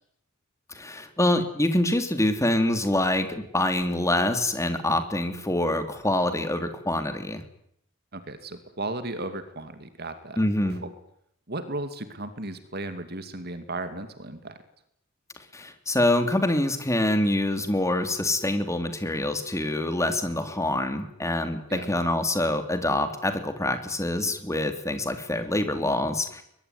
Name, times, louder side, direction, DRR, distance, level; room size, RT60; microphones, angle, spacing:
voice 1, 0.7-7.4 10.4-10.8 15.5-26.4, left 1 dB, 15° left, 8 dB, 3.1 m, -25 dB
voice 2, 8.1-10.4 10.7-10.9 11.5-14.6 21.7-21.9, right 2 dB, 50° right, 10 dB, 2.5 m, -35 dB
23.0 x 22.0 x 9.7 m, 0.72 s
head